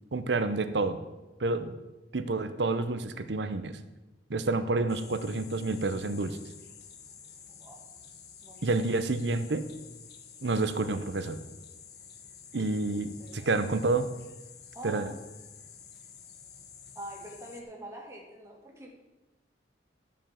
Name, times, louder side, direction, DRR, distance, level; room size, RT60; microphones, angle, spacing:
voice 1, 0.1-1.0 1.4-1.8 2.1-3.8 4.3-6.4 8.6-9.7 10.4-11.4 12.5-14.1 14.8-15.1, right 3 dB, 75° right, 11 dB, 0.8 m, -29 dB
sound 1, 4.9-17.6, left 7 dB, 60° left, 1.2 m, -50 dB
voice 2, 8.4-8.8 12.5-12.7 12.9-13.5 14.7-15.2 17.0-18.9, right 1 dB, 15° right, -1 dB, 2.0 m, -45 dB
12.0 x 5.2 x 7.3 m, 1.1 s
head